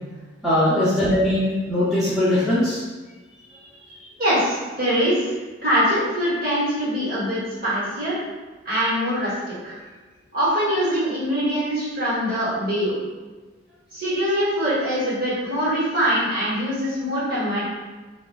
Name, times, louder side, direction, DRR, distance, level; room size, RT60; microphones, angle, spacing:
voice 1, 0.4-2.8, left 1 dB, ahead, -11 dB, 0.6 m, -20 dB
voice 2, 4.2-5.3 5.6-8.2 8.6-9.3 9.6-9.8 10.3-12.9 13.9-17.7, equal, 50° right, -9 dB, 1.3 m, -23 dB
2.5 x 2.4 x 3.9 m, 1.3 s
head